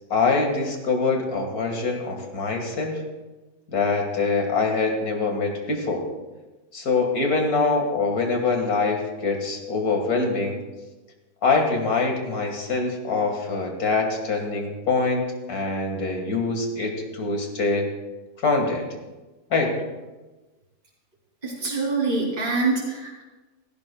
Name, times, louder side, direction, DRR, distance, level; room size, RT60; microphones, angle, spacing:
voice 1, 0.1-3.0 3.7-6.1 6.7-10.6 11.4-17.9 18.4-18.8 19.5-19.7, left 3 dB, 75° left, 3 dB, 2.3 m, -24 dB
voice 2, 21.4-23.2, right 3 dB, 30° right, -7 dB, 3.1 m, -25 dB
16.0 x 16.0 x 2.3 m, 1.1 s
omnidirectional pair, 1.6 m